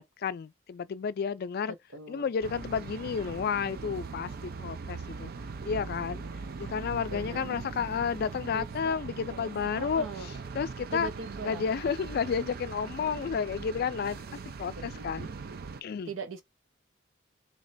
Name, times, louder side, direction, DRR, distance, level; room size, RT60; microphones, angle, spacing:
voice 1, 0.0-1.7 2.1-5.3 5.6-6.2 6.6-11.1 11.4-14.2 14.6-15.3 15.8-16.1, left 6 dB, 50° left, 0.3 m, -31 dB
voice 2, 1.9-2.3 7.1-7.8 9.8-10.3 10.9-11.7 14.7-15.3 16.1-16.4, right 3 dB, 85° right, 0.9 m, -40 dB
sound 1, 2.4-15.8, right 4 dB, 50° right, 0.4 m, -40 dB
3.3 x 2.9 x 4.0 m
head